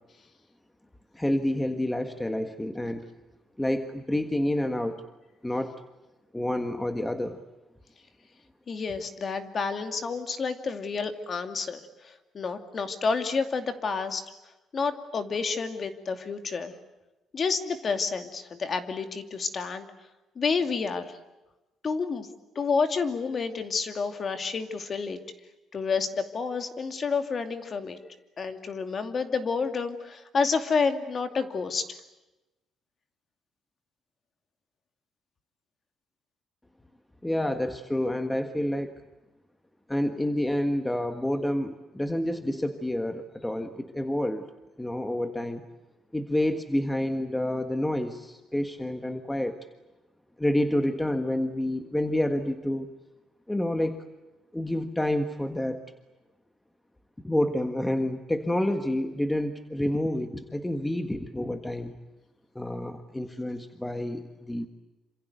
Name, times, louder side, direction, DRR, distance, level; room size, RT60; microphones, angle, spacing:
voice 1, 1.1-3.1 3.6-5.0 5.4-5.7 6.3-7.4 37.2-39.0 39.9-44.5 44.8-45.6 46.1-49.6 50.4-52.9 53.5-54.0 54.5-55.8 57.2-61.9 62.5-64.7, left 1 dB, 5° left, 7 dB, 1.5 m, -28 dB
voice 2, 8.7-14.2 14.7-16.7 17.3-19.9 20.4-21.2 21.8-22.3 22.5-25.2 25.7-28.0 28.4-32.0, left 5 dB, 35° left, 8 dB, 2.6 m, -29 dB
27.5 x 27.0 x 8.1 m, 1.0 s
cardioid pair, 145°, 0 cm